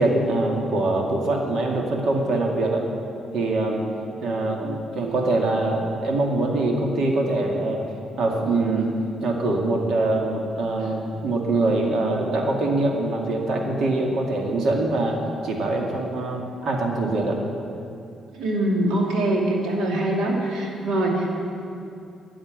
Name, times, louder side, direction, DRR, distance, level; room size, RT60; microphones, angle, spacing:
voice 1, 0.0-2.9 3.3-3.8 4.2-7.8 8.2-8.9 9.2-17.4, right 2 dB, 65° right, 0 dB, 2.2 m, -23 dB
voice 2, 4.3-4.7 5.0-5.2 12.1-12.4 18.3-21.3, right 1 dB, 85° right, -1 dB, 2.5 m, -24 dB
11.0 x 9.0 x 9.4 m, 2.6 s
cardioid pair, 90°, 0 cm